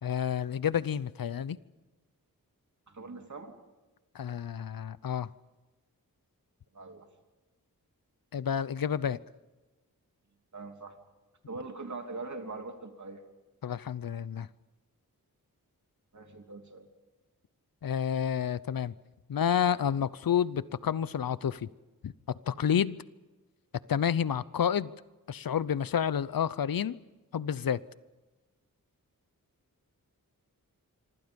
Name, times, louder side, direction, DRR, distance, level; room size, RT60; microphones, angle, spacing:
voice 1, 0.0-1.6 4.1-5.3 8.3-9.2 13.6-14.5 17.8-18.9 19.3-21.7 22.0-23.0 23.9-24.9 25.3-27.0 27.3-27.8, left 8 dB, 75° left, 18 dB, 0.8 m, -29 dB
voice 2, 2.9-3.5 6.7-7.1 10.5-11.0 11.5-13.2 16.1-16.9, right 3 dB, 55° right, 4 dB, 3.0 m, -42 dB
26.0 x 25.0 x 5.3 m, 1.2 s
wide cardioid pair, 110°, 35 cm